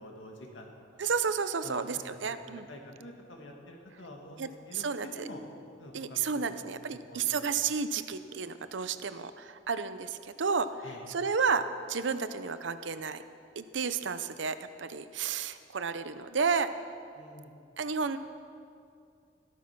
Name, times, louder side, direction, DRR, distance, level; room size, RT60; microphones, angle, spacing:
voice 1, 0.0-1.0 1.6-2.4 2.7-5.4 5.8-7.4 10.8-11.1 17.1-17.6, left 1 dB, 80° left, 1 dB, 2.1 m, -48 dB
voice 2, 1.0-2.7 4.4-5.3 5.9-10.7 11.1-13.2 13.6-16.7 17.8-18.2, right 5 dB, 80° right, 12 dB, 0.7 m, -32 dB
13.5 x 13.0 x 6.0 m, 2.4 s
head